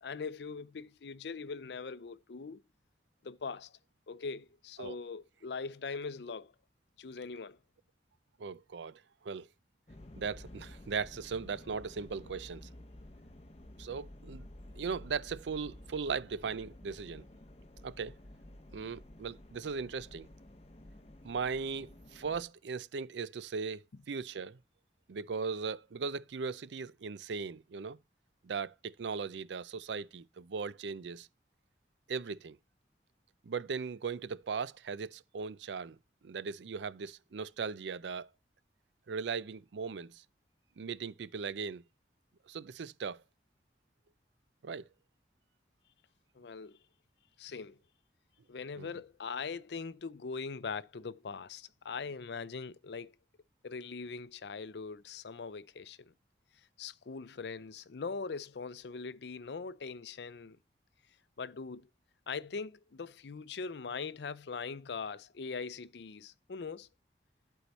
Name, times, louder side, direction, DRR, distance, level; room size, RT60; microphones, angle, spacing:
voice 1, 0.0-2.6 3.2-3.7 4.1-6.5 7.0-7.6 46.4-46.8 47.4-47.8 48.5-53.1 53.6-56.1 56.8-60.6 61.4-61.9 62.3-66.9, left 5 dB, 75° left, 0.5 m, -41 dB
voice 2, 8.4-9.5 10.2-12.7 13.8-14.5 14.7-17.3 17.8-18.1 18.7-20.3 21.2-23.8 24.1-24.6 25.1-28.0 28.4-31.3 32.1-32.6 33.4-36.0 36.2-38.3 39.1-40.2 40.8-41.8 42.5-43.2 44.6-44.9 48.8-48.9, right 5 dB, 85° right, 0.5 m, -38 dB
sound 1, 9.9-22.4, left 1 dB, 35° left, 0.8 m, -52 dB
11.5 x 4.7 x 4.1 m
head